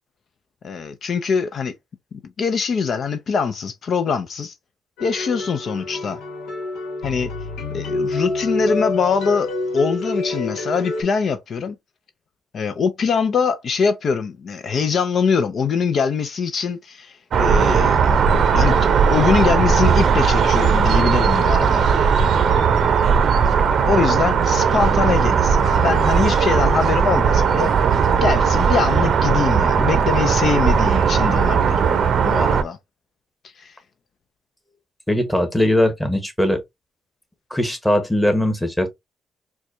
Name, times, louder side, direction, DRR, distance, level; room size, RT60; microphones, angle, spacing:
voice 1, 0.6-1.7 2.4-4.5 5.0-6.2 7.0-7.3 7.7-11.8 12.5-18.1 18.5-21.8 23.7-27.7 28.2-32.8 33.6-33.7, left 5 dB, 55° left, 0.5 m, -23 dB
sound 1, 5.0-11.0, left 2 dB, 85° left, 1.1 m, -27 dB
sound 2, 17.3-32.6, right 6 dB, 60° right, 0.6 m, -17 dB
voice 2, 35.1-36.6 37.5-38.9, left 1 dB, 5° left, 1.1 m, -20 dB
4.4 x 2.3 x 2.6 m
cardioid pair, 90°, 0 cm